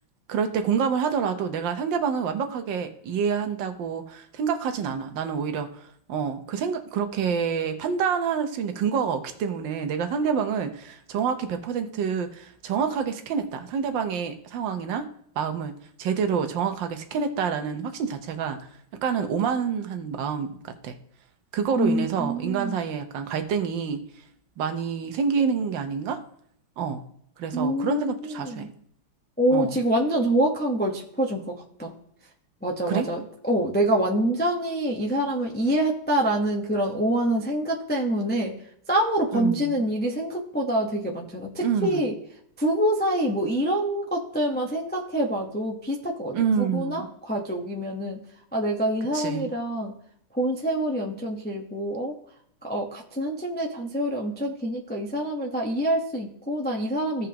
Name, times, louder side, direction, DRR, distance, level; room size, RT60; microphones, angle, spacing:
voice 1, 0.3-15.1 15.4-18.7 19.0-21.0 21.5-24.0 24.6-26.2 26.8-27.0 27.4-28.7 29.5-29.8 32.9-33.1 39.3-39.8 41.6-42.1 46.3-47.1 49.1-49.5, right 6 dB, 70° right, 7 dB, 1.4 m, -27 dB
voice 2, 21.8-22.8 27.5-28.1 28.5-28.6 29.4-31.9 32.6-33.2 33.5-38.5 38.9-42.1 42.6-48.2 48.5-49.9 50.3-52.1 52.6-57.3, right 1 dB, 15° left, -1 dB, 0.3 m, -26 dB
16.0 x 5.4 x 2.9 m, 0.66 s
omnidirectional pair, 2.2 m